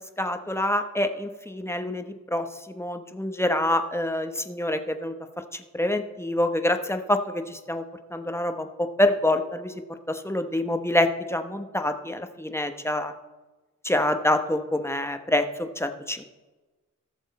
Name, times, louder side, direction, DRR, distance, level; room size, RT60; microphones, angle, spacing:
voice 1, 0.2-5.1 5.5-7.8 8.1-8.7 9.0-9.7 10.1-13.1 13.8-16.3, left 1 dB, 10° left, 6 dB, 1.0 m, -26 dB
18.5 x 6.3 x 4.2 m, 1.2 s
cardioid pair, 80°, 33 cm